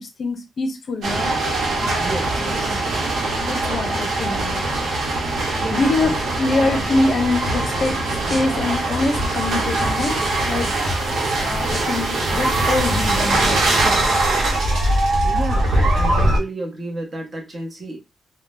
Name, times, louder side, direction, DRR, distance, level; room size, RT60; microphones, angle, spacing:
voice 1, 0.0-1.3 1.8-2.1 2.4-2.8 3.4-4.7 5.7-10.7 11.4-14.2, left 2 dB, 50° left, 5 dB, 0.5 m, -25 dB
sound 1, 1.0-16.4, right 2 dB, 80° right, 0.9 m, -21 dB
voice 2, 2.0-2.8 5.5-6.4 15.2-18.0, right 2 dB, 35° right, 2 dB, 1.0 m, -31 dB
sound 2, 7.4-14.3, equal, 50° right, 1.4 m, -33 dB
3.8 x 2.1 x 2.5 m, 0.24 s
wide cardioid pair, 165°, 0 cm